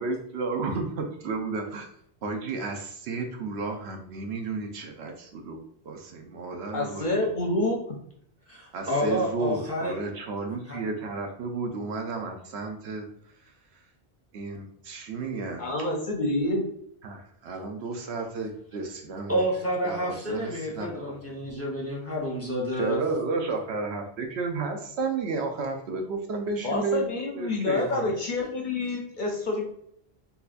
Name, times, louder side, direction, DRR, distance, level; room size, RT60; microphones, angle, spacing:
voice 1, 0.0-1.9 2.2-7.1 8.7-13.1 14.3-15.6 17.0-19.5 19.8-21.4 22.7-27.1 27.4-28.1, right 4 dB, 80° right, 4 dB, 0.9 m, -32 dB
voice 2, 6.7-8.0 15.6-16.7 26.6-29.6, left 2 dB, 55° left, 1 dB, 0.6 m, -28 dB
voice 3, 8.5-9.9 10.7-10.8 19.3-23.0, equal, 15° left, -4 dB, 0.7 m, -29 dB
3.9 x 2.7 x 2.5 m, 0.67 s
omnidirectional pair, 1.1 m